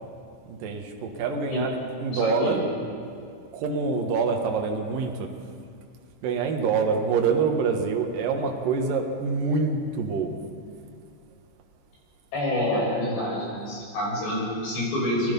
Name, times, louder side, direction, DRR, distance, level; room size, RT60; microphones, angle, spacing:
voice 1, 0.5-2.6 3.5-5.3 6.2-10.4, right 4 dB, 60° right, 3 dB, 2.6 m, -26 dB
voice 2, 2.1-2.6 12.3-15.3, left 1 dB, 55° left, -4 dB, 8.1 m, -27 dB
28.0 x 19.0 x 5.5 m, 2.4 s
omnidirectional pair, 5.8 m